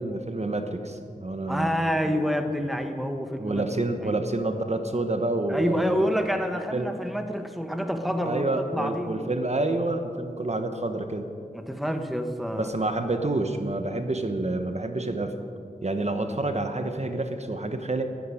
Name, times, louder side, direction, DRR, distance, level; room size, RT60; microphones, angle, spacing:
voice 1, 0.0-1.8 2.0-2.1 3.4-6.1 6.7-6.9 8.2-11.3 12.6-15.3 15.8-18.0, right 2 dB, 45° right, 6 dB, 1.1 m, -28 dB
voice 2, 1.5-3.6 4.0-4.1 5.5-9.3 11.5-12.7, equal, ahead, 6 dB, 1.4 m, -28 dB
13.5 x 10.5 x 9.8 m, 2.3 s
wide cardioid pair, 50°, 16 cm